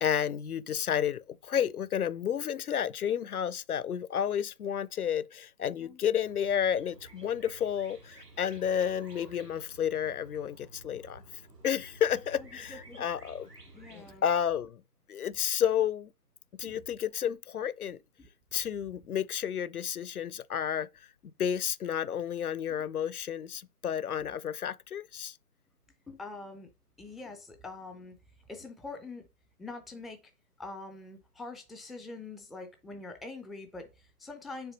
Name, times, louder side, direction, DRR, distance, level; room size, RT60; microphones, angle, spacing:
voice 1, 0.0-11.2 11.6-13.5 13.9-14.8 15.1-16.1 16.5-18.0 18.5-21.1 21.4-25.4, left 9 dB, 65° left, 0.5 m, -31 dB
voice 2, 5.7-6.0 12.4-13.1 13.7-14.2 16.6-16.8 18.2-18.3 26.1-26.7 27.0-28.1 28.5-29.3 29.6-30.3 30.6-34.7, left 3 dB, ahead, 0.4 m, -44 dB
sound 1, 6.2-14.2, right 2 dB, 80° right, 2.1 m, -53 dB
6.8 x 3.5 x 3.9 m
figure-of-eight pair, 155°, 48 cm